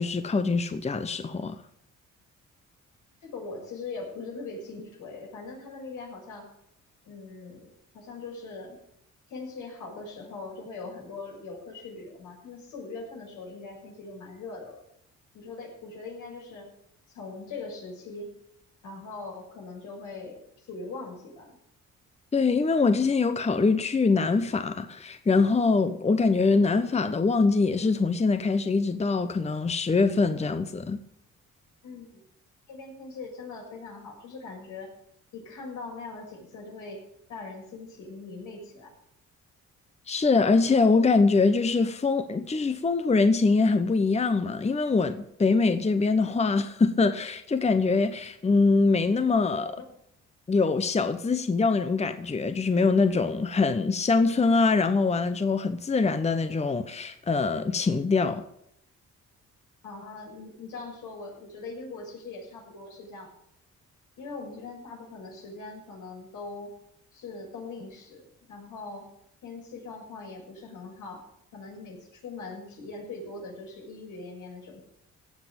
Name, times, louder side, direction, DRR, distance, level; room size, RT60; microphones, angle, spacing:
voice 1, 0.0-1.6 22.3-31.0 40.1-49.8 50.5-58.4, left 4 dB, 20° left, 0.9 m, -23 dB
voice 2, 3.2-6.5 7.0-8.8 9.3-14.8 15.3-16.7 17.1-18.3 18.8-20.4 20.7-21.6 31.8-32.2 32.7-34.9 35.3-37.0 37.3-38.9 49.8-49.9 59.8-63.3 64.2-66.7 67.1-68.2 68.5-69.1 69.4-71.2 71.5-74.8, left 3 dB, 80° left, 6.6 m, -41 dB
17.0 x 6.0 x 8.9 m
cardioid pair, 90°, 30 cm